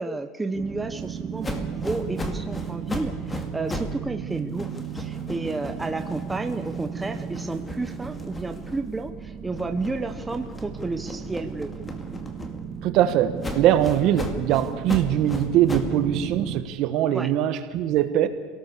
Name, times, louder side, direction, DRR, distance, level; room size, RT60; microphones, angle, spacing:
voice 1, 0.0-4.7 4.9-11.7 17.1-17.3, right 3 dB, 10° right, 7 dB, 1.0 m, -31 dB
sound 1, 0.5-16.6, right 8 dB, 35° right, 1.6 m, -35 dB
sound 2, 1.4-4.0 4.3-9.1 9.5-12.9 13.4-16.0, left 2 dB, 15° left, 2.2 m, -36 dB
voice 2, 12.8-18.3, right 11 dB, 55° right, 10 dB, 1.6 m, -22 dB
27.0 x 18.5 x 7.0 m, 1.5 s
supercardioid pair, 140°, 0 cm